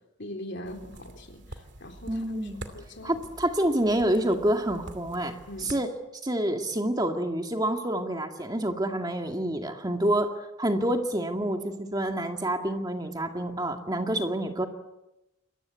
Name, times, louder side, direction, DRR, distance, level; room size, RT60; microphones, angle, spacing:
voice 1, 0.2-2.4 2.7-3.2 5.5-5.7, left 1 dB, 55° left, 5 dB, 3.7 m, -41 dB
sound 1, 0.6-5.8, right 1 dB, 55° right, 2.6 m, -47 dB
voice 2, 2.1-2.6 3.0-5.9 6.2-14.7, right 1 dB, 20° right, 4 dB, 2.0 m, -28 dB
27.0 x 23.0 x 8.4 m, 0.94 s
head